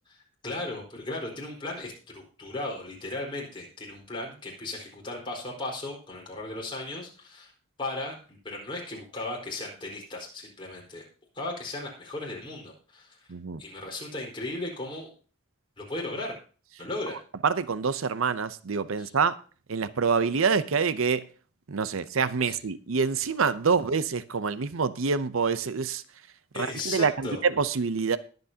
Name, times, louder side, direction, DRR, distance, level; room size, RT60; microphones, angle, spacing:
voice 1, 0.4-7.5 7.8-11.0 11.3-13.3 13.6-15.1 15.8-16.3 16.8-17.2 19.0-19.1 22.5-22.6 26.5-27.4, left 2 dB, 25° left, 4.3 m, -36 dB
voice 2, 13.3-13.6 17.4-19.4 19.7-21.2 21.7-26.0 26.6-28.2, right 5 dB, 75° right, 0.6 m, -26 dB
20.5 x 8.1 x 2.8 m
head